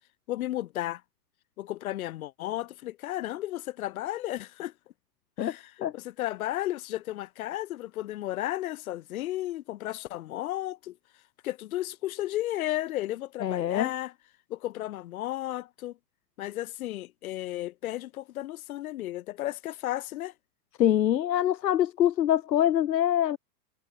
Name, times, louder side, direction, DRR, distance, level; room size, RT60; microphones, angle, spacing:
voice 1, 0.3-1.0 1.6-4.7 5.4-11.0 11.4-14.1 14.5-16.0 16.4-20.3, left 15 dB, 60° left, 2.2 m, -34 dB
voice 2, 5.4-5.9 13.4-13.9 20.8-23.4, left 11 dB, 85° left, 2.3 m, -24 dB
supercardioid pair, 160°, 49 cm